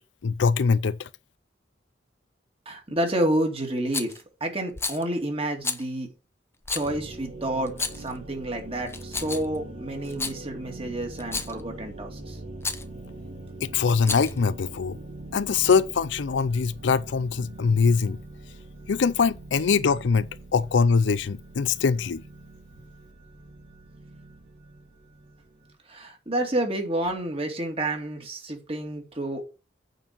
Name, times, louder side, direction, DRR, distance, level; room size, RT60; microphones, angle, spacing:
voice 1, 0.2-1.1 13.6-15.0 15.3-18.2 18.9-22.2, left 5 dB, 75° left, 0.5 m, -23 dB
voice 2, 2.7-6.1 6.7-12.4 25.9-29.4, right 1 dB, 30° right, 2.3 m, -29 dB
Rattle, 3.9-4.2 4.7-5.0 5.6-5.8 6.6-6.9 7.7-8.1 8.9-9.6 10.0-10.4 11.2-11.6 12.6-12.9 13.9-14.4, left 4 dB, 15° left, 0.7 m, -31 dB
sound 1, 6.8-25.7, right 2 dB, 70° right, 2.5 m, -43 dB
9.0 x 4.5 x 6.7 m
head